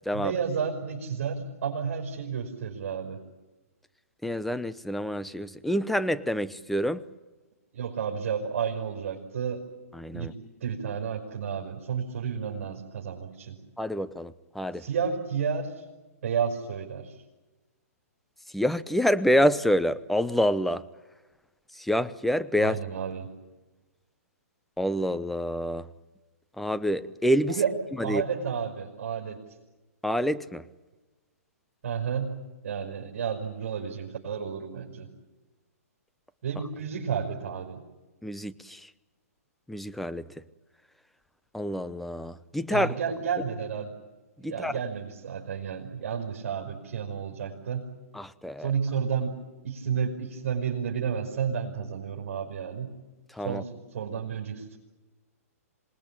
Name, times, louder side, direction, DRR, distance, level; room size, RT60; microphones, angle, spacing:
voice 1, 0.1-3.2 7.7-9.6 10.1-10.3 10.6-13.6 14.7-15.8 16.2-17.2 22.6-23.3 27.4-27.8 28.0-29.4 31.8-32.3 32.6-35.1 36.4-37.8 42.7-43.9 44.4-47.9 48.6-49.4 49.6-52.9 53.4-54.8, right 7 dB, 60° right, -1 dB, 5.3 m, -31 dB
voice 2, 4.2-7.0 10.0-10.3 13.8-14.8 18.5-20.8 21.8-22.8 24.8-25.9 26.6-27.5 28.0-28.2 30.0-30.6 38.2-38.8 39.7-40.3 41.5-42.9 44.4-44.8 48.1-48.7 53.3-53.6, equal, ahead, 12 dB, 0.9 m, -27 dB
26.5 x 20.0 x 8.8 m, 1.2 s
hypercardioid pair, 135°, 8 cm